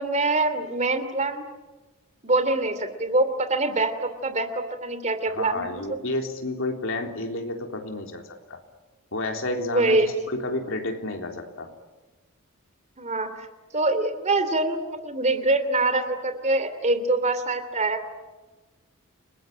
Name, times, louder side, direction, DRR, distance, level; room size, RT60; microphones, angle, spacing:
voice 1, 0.0-1.5 2.2-6.0 9.6-10.1 13.0-13.5 13.7-18.0, right 2 dB, 30° right, 10 dB, 2.8 m, -24 dB
voice 2, 5.3-8.6 9.1-11.7, left 2 dB, 65° left, 3 dB, 3.7 m, -31 dB
29.5 x 20.0 x 9.0 m, 1.2 s
head